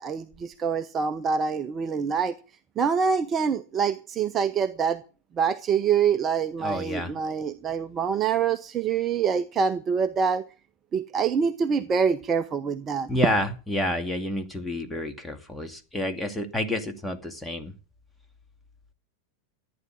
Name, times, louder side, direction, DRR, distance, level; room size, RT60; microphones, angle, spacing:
voice 1, 0.0-2.3 2.8-5.0 5.4-10.4 10.9-13.1, right 6 dB, 25° right, 0.9 m, -25 dB
voice 2, 6.6-7.1 13.1-17.7, left 1 dB, 5° left, 2.5 m, -29 dB
14.5 x 9.8 x 7.6 m
figure-of-eight pair, 90°, 0 cm